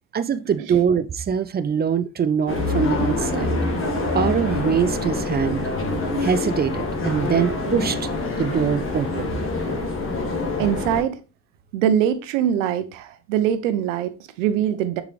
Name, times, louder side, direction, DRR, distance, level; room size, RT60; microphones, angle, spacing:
voice 1, 0.1-3.6 4.1-5.6 6.2-8.1 8.4-9.3, right 7 dB, 25° right, 0.6 m, -23 dB
sound 1, 2.5-11.0, left 2 dB, 30° left, 2.4 m, -25 dB
voice 2, 10.6-11.2 11.7-15.0, right 9 dB, 75° right, 0.8 m, -23 dB
6.6 x 5.0 x 3.3 m
hypercardioid pair, 65°, 38 cm